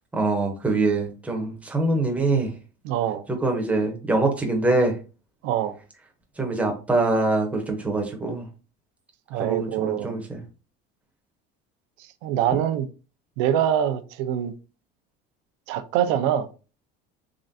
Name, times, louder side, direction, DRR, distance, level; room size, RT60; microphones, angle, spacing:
voice 1, 0.1-2.6 3.3-5.0 6.4-8.5 9.4-10.4, right 2 dB, 5° right, 0.7 m, -24 dB
voice 2, 2.8-3.2 5.4-5.8 9.3-10.2 12.2-12.9 13.4-14.5 15.7-16.5, right 10 dB, 70° right, 0.6 m, -24 dB
3.7 x 3.2 x 2.6 m
cardioid pair, 160°, 21 cm